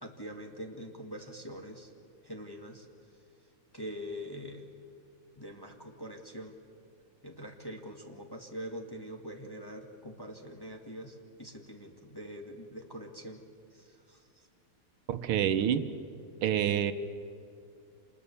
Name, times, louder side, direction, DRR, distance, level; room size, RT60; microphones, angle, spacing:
voice 1, 0.0-1.9 2.2-2.9 3.7-4.7 5.4-6.6 7.2-13.4 13.7-14.5, equal, 10° left, 2 dB, 1.6 m, -44 dB
voice 2, 15.1-15.9 16.4-16.9, right 9 dB, 80° right, 10 dB, 1.8 m, -27 dB
27.0 x 20.5 x 7.0 m, 2.5 s
omnidirectional pair, 2.4 m